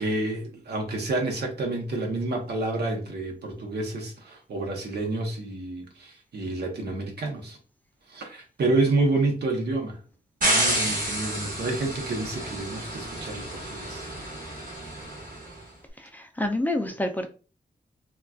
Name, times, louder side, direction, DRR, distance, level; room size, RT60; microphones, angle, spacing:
voice 1, 0.0-7.6 8.1-10.0 10.5-14.1, right 2 dB, 90° right, 0.8 m, -29 dB
sound 1, 10.4-15.5, right 1 dB, 60° right, 1.1 m, -29 dB
voice 2, 16.1-17.3, left 1 dB, 10° left, 0.4 m, -27 dB
3.7 x 2.3 x 2.3 m
wide cardioid pair, 125°, 17 cm